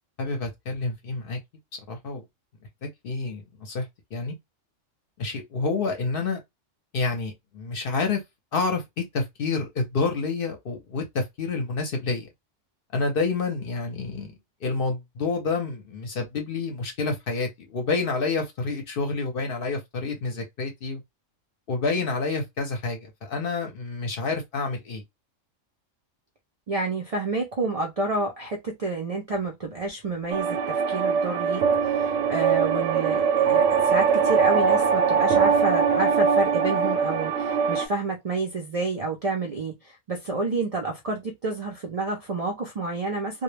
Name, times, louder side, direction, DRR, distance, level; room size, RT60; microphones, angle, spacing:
voice 1, 0.2-1.4 1.7-2.2 2.8-4.3 5.2-6.4 6.9-8.2 8.5-12.3 12.9-14.3 14.6-21.0 21.7-25.0, left 4 dB, 60° left, 0.7 m, -28 dB
voice 2, 26.7-43.4, right 3 dB, 65° right, 0.3 m, -29 dB
sound 1, 30.3-37.9, right 6 dB, 85° right, 0.9 m, -22 dB
2.2 x 2.1 x 3.1 m
omnidirectional pair, 1.3 m